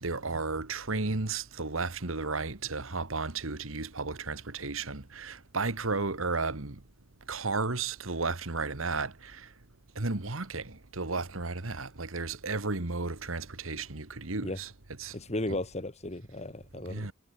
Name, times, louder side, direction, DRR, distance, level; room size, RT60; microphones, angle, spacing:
voice 1, 0.0-6.8 7.3-9.5 10.0-14.7 15.0-15.1 16.9-17.1, right 3 dB, 75° right, 1.9 m, -33 dB
voice 2, 15.1-17.1, left 1 dB, 30° left, 1.9 m, -35 dB
head